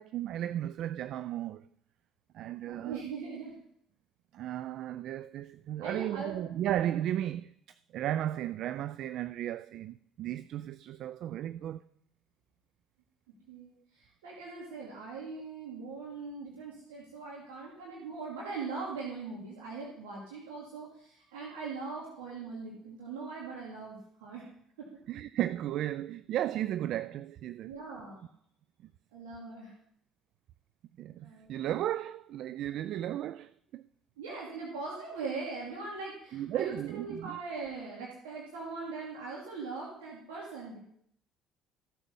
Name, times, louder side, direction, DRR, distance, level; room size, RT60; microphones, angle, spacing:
voice 1, 0.0-1.6 2.3-3.1 4.3-11.8 25.1-27.7 31.0-33.8 36.3-37.4, right 12 dB, 60° right, 0.3 m, -35 dB
voice 2, 2.6-3.5 5.8-6.5 13.5-24.4 24.8-24.9 27.7-28.3 29.1-29.7 31.2-31.6 34.2-40.9, right 4 dB, 80° right, 2.6 m, -41 dB
14.5 x 7.1 x 5.4 m
hypercardioid pair, 60°, 0 cm